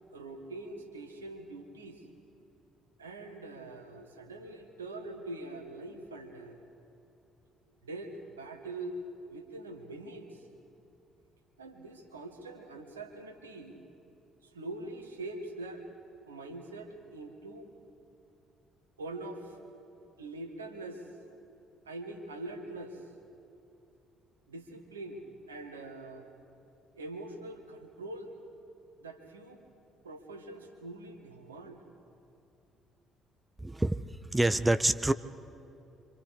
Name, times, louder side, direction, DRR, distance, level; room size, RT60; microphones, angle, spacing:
voice 1, 0.1-2.0 3.0-6.6 7.8-9.0 9.3-10.5 11.6-13.8 14.4-15.8 16.3-17.7 19.0-19.6 20.2-21.1 21.8-23.1 24.5-26.3 26.9-28.3 29.0-29.6 30.0-31.8, right 2 dB, 85° right, 5 dB, 1.8 m, -43 dB
voice 2, 33.6-34.0 34.3-35.1, right 1 dB, 15° right, 13 dB, 0.7 m, -26 dB
27.0 x 26.0 x 4.9 m, 2.8 s
figure-of-eight pair, 50°, 0 cm